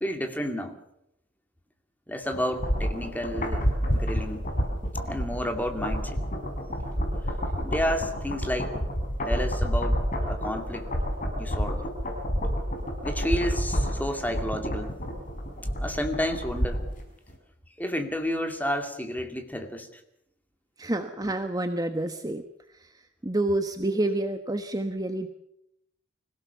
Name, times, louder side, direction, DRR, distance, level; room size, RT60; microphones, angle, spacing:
voice 1, 0.0-0.8 2.1-4.5 5.0-6.2 7.6-8.8 9.3-10.9 11.4-11.8 13.0-15.0 15.8-16.8 17.8-20.0, equal, 10° left, 6 dB, 2.4 m, -31 dB
sound 1, 2.3-17.0 17.3-17.4, equal, 40° left, 5.8 m, -29 dB
voice 2, 20.8-22.4 22.8-22.9 23.2-25.3, right 1 dB, 20° right, 7 dB, 1.2 m, -28 dB
25.0 x 17.0 x 7.0 m, 0.77 s
head